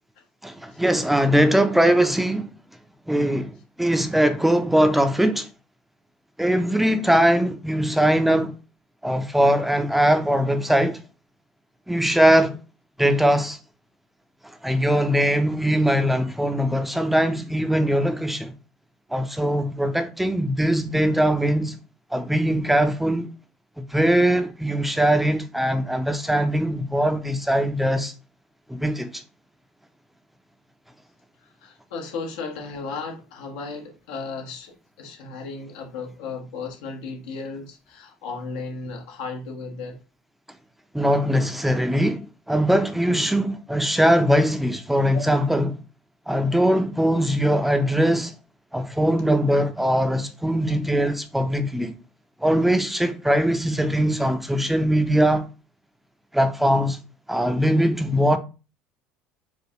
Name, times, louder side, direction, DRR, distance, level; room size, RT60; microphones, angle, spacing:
voice 1, 0.4-2.5 3.1-5.5 6.4-8.5 9.0-11.0 11.9-12.6 13.0-13.6 14.6-18.5 19.1-21.8 22.1-23.3 23.8-28.1 28.7-29.2 40.9-45.8 46.3-48.3 48.7-51.9 52.4-55.5 56.3-57.0 57.3-58.4, equal, 5° right, 0.4 m, -21 dB
voice 2, 31.4-40.0 45.1-45.2, left 4 dB, 85° left, 1.2 m, -35 dB
4.8 x 2.2 x 2.9 m
supercardioid pair, 110°, 4 cm